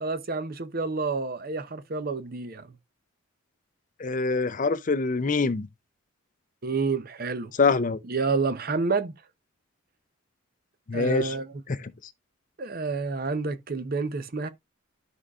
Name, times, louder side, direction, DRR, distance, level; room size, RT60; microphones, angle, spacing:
voice 1, 0.0-2.7 6.6-7.5 8.0-9.1 10.9-11.5 12.6-14.5, right 4 dB, 45° right, 0.7 m, -29 dB
voice 2, 4.0-5.7 7.6-8.0 10.9-11.3 11.7-11.9, left 4 dB, 35° left, 0.5 m, -24 dB
12.5 x 4.8 x 2.4 m
head